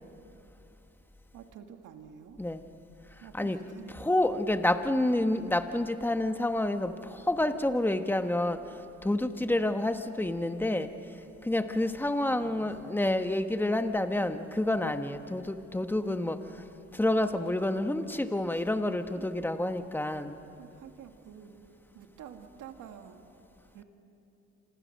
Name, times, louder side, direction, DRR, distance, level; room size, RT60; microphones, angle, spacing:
voice 1, 1.3-2.4 3.2-4.1 9.4-9.7 11.8-13.1 15.9-16.6 19.2-19.3 20.6-21.5 21.9-23.2 23.7-23.8, right 8 dB, 85° right, 5 dB, 2.1 m, -49 dB
voice 2, 3.9-10.9 11.4-16.6 16.9-20.4, left 1 dB, 5° left, 8 dB, 1.3 m, -29 dB
27.5 x 26.5 x 6.6 m, 2.9 s
cardioid pair, 90°, 30 cm